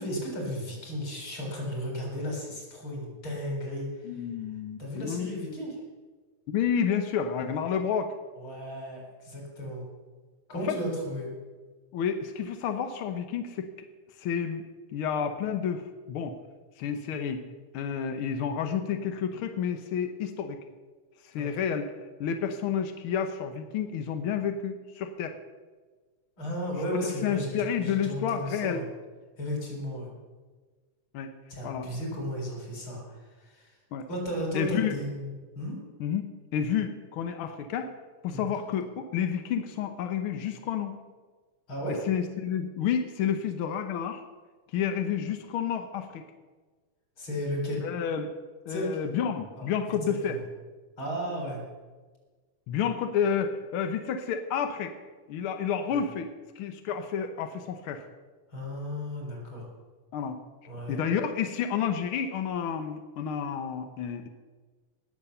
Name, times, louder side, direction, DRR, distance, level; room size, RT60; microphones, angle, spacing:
voice 1, 0.0-4.3 4.8-5.8 8.4-9.9 10.5-11.3 21.3-21.5 26.4-28.8 29.4-30.1 31.5-33.8 34.1-35.8 38.3-38.5 41.7-42.0 47.2-47.9 48.7-48.9 49.6-49.7 50.3-50.4 51.0-51.6 55.9-56.0 58.5-59.7 60.7-61.0, equal, 40° left, 0 dB, 4.8 m, -34 dB
voice 2, 4.0-5.4 6.5-8.1 10.7-10.8 11.9-13.7 14.2-14.6 14.9-16.4 16.8-17.4 17.7-20.6 21.2-21.9 22.2-25.4 27.0-28.8 31.1-31.3 31.6-31.9 33.9-34.1 34.5-34.9 36.0-36.3 36.5-37.9 38.2-41.0 42.1-44.2 44.7-46.2 47.8-48.3 48.7-50.4 52.7-54.9 55.3-58.0 60.1-60.4 60.9-64.3, left 7 dB, 70° left, 7 dB, 1.3 m, -30 dB
18.5 x 7.4 x 6.8 m, 1.4 s
omnidirectional pair, 3.5 m